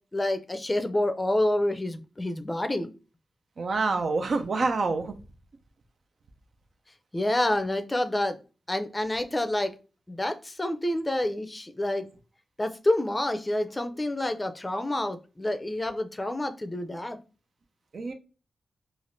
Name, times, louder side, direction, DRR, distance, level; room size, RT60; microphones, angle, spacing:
voice 1, 0.1-2.9 7.1-8.4 8.7-9.7 10.1-12.1 12.6-17.2, left 1 dB, 25° left, 0.5 m, -28 dB
voice 2, 3.6-5.1 17.9-18.1, right 3 dB, 65° right, 0.4 m, -27 dB
3.3 x 2.4 x 2.6 m
cardioid pair, 55°, 0 cm